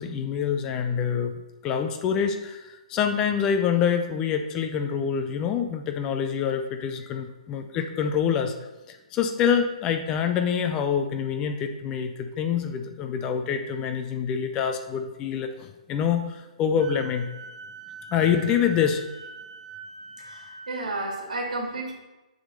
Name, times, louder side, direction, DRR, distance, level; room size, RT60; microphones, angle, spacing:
voice 1, 0.0-1.3 1.6-8.5 8.9-17.3 18.1-19.0, left 7 dB, 15° left, 7 dB, 0.3 m, -26 dB
Wind instrument woodwind instrument, 16.8-20.8, right 5 dB, 45° right, 2.0 m, -42 dB
voice 2, 20.2-21.9, right 2 dB, 75° right, 1 dB, 2.2 m, -32 dB
7.1 x 3.6 x 6.4 m, 1.1 s
hypercardioid pair, 170°, 4 cm